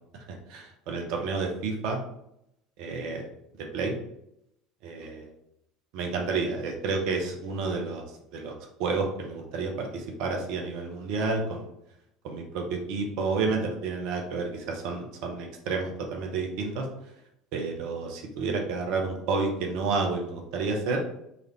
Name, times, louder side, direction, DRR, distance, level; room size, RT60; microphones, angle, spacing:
voice 1, 0.3-2.0 2.8-3.2 3.7-3.9 4.8-5.3 5.9-8.0 8.3-8.5 8.8-11.7 12.2-16.9 17.5-21.0, right 4 dB, 55° right, 2 dB, 0.8 m, -30 dB
4.0 x 3.2 x 3.1 m, 0.77 s
figure-of-eight pair, 65°, 0 cm